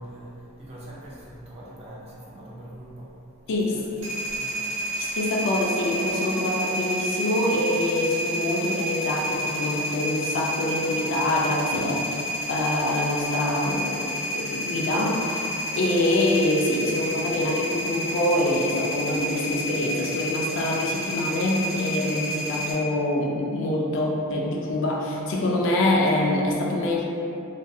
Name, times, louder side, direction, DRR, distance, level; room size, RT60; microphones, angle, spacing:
voice 1, 0.0-4.7, right 1 dB, 25° right, -6 dB, 0.4 m, -42 dB
sound 1, 4.0-22.7, equal, 65° right, 1.0 m, -30 dB
voice 2, 5.0-12.2 12.5-15.4 15.7-27.1, left 1 dB, 55° left, -2 dB, 0.3 m, -25 dB
2.6 x 2.5 x 2.2 m, 2.7 s
head